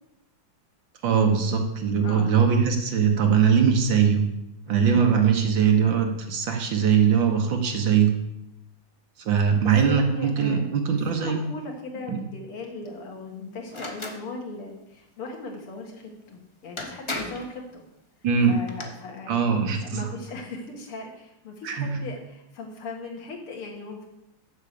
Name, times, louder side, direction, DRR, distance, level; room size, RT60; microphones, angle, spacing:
voice 1, 1.0-4.2 4.7-8.2 9.3-11.4 12.1-12.2 18.2-18.6 19.3-20.1 21.6-22.0, right 7 dB, 65° right, 3 dB, 1.9 m, -21 dB
voice 2, 2.0-2.4 4.7-5.0 9.6-10.6 11.1-17.8 18.5-19.4 19.8-24.0, left 3 dB, 85° left, 1 dB, 2.6 m, -38 dB
sound 1, 13.7-14.2 16.3-16.4 16.8-17.5 18.4-18.8, left 2 dB, 40° left, 0.4 m, -34 dB
7.3 x 7.3 x 6.8 m, 0.86 s
omnidirectional pair, 2.3 m